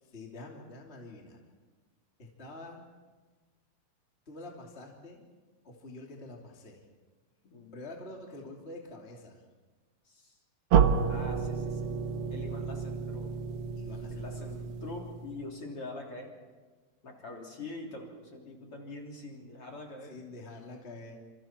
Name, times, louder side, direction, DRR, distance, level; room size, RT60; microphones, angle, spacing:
voice 1, 0.1-1.4 2.2-2.8 4.3-5.3 5.6-6.8 7.7-9.4 13.7-14.7 20.1-21.2, left 2 dB, 20° left, -1 dB, 2.8 m, -46 dB
voice 2, 7.4-7.8 10.1-10.4 11.1-11.9 12.3-13.3 14.1-16.4 17.0-20.2, left 2 dB, 40° left, 0 dB, 4.1 m, -44 dB
sound 1, 10.7-15.5, right 7 dB, 85° right, 1.2 m, -30 dB
29.5 x 28.0 x 4.5 m, 1.3 s
omnidirectional pair, 4.0 m